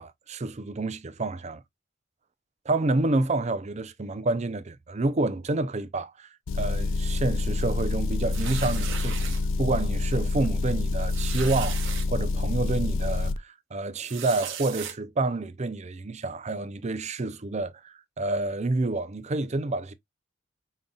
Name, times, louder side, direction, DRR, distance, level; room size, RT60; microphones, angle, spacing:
voice 1, 0.0-1.6 2.7-6.3 6.5-19.9, right 2 dB, 35° right, 0.5 m, -29 dB
Motor vehicle (road) / Engine, 6.5-13.4, left 3 dB, 70° left, 0.5 m, -27 dB
sound 1, 8.3-9.4 10.0-10.2 10.4-10.5 11.1-12.1 12.7-12.8 14.0-14.9, right 8 dB, 70° right, 1.1 m, -37 dB
5.2 x 3.9 x 2.3 m
head